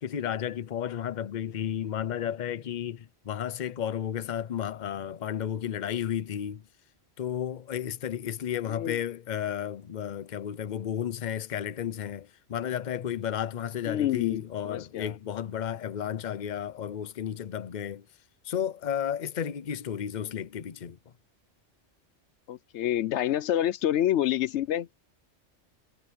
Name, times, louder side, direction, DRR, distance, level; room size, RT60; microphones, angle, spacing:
voice 1, 0.0-6.6 7.2-18.0 18.4-21.0, left 9 dB, 45° left, 0.8 m, -33 dB
voice 2, 13.9-15.1 22.5-25.0, left 12 dB, 80° left, 0.9 m, -28 dB
omnidirectional pair, 1.2 m